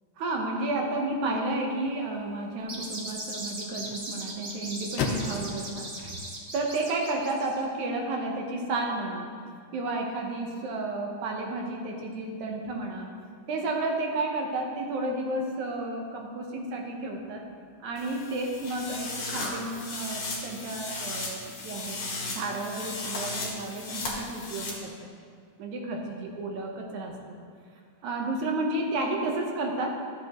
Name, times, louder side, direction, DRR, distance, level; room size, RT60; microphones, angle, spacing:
voice 1, 0.2-6.2 6.5-9.3 9.7-13.1 13.5-17.5 17.8-22.0 22.3-25.1 25.6-27.4 28.0-30.0, right 2 dB, 75° right, 1 dB, 2.4 m, -32 dB
sound 1, 1.4-7.6, left 4 dB, 70° left, 1.6 m, -39 dB
sound 2, 2.6-7.6, right 2 dB, 45° right, 0.9 m, -38 dB
sound 3, 18.0-24.7, left 3 dB, 50° left, 2.1 m, -36 dB
13.5 x 7.5 x 3.0 m, 2.2 s
omnidirectional pair, 3.5 m